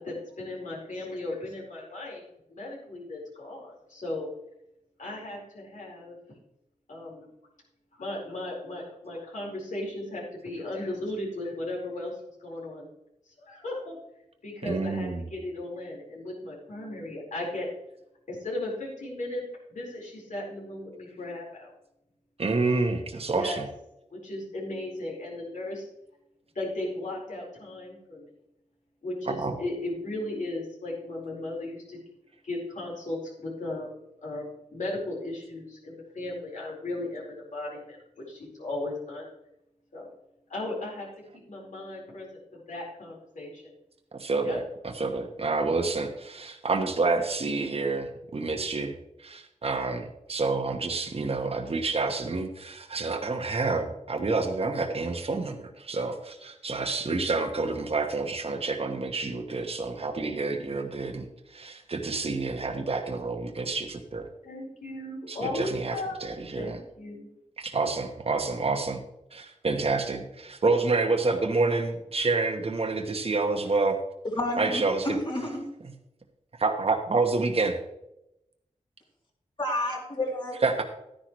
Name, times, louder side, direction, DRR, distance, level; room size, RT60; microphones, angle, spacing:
voice 1, 0.0-2.2 2.5-4.3 5.0-6.2 6.9-7.3 7.9-12.9 13.3-14.0 14.4-17.7 18.3-19.4 19.7-21.7 23.3-23.6 24.1-25.8 26.5-28.3 29.0-32.0 32.4-33.9 34.2-39.3 39.9-40.1 40.5-41.1 41.3-42.3 42.7-43.6 44.4-44.6 64.4-67.3, left 2 dB, 75° left, -4 dB, 4.4 m, -36 dB
voice 2, 14.6-15.3 22.4-23.7 29.3-29.5 44.1-48.9 49.2-64.3 65.3-66.8 67.6-69.0 69.3-74.0 74.6-75.1 76.6-77.7 80.6-80.8, right 3 dB, 50° right, 4 dB, 1.2 m, -28 dB
voice 3, 74.4-75.7 79.6-80.6, left 1 dB, 40° left, -1 dB, 3.1 m, -30 dB
12.5 x 10.5 x 3.2 m, 0.85 s
wide cardioid pair, 75°, 13 cm